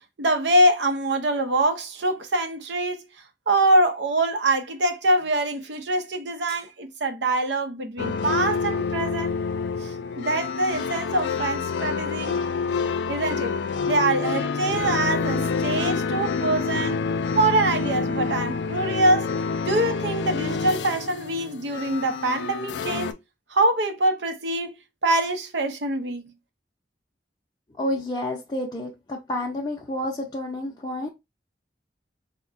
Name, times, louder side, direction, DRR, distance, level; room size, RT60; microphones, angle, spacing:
voice 1, 0.2-3.0 3.5-9.3 9.8-12.4 13.1-13.6 13.9-17.0 17.3-19.3 19.6-23.2 23.5-24.8 25.0-26.3, right 1 dB, 75° right, 0.6 m, -24 dB
sound 1, 8.0-23.1, left 5 dB, 75° left, 0.3 m, -27 dB
voice 2, 27.8-31.1, left 1 dB, 25° left, 0.5 m, -29 dB
4.3 x 2.1 x 2.4 m
head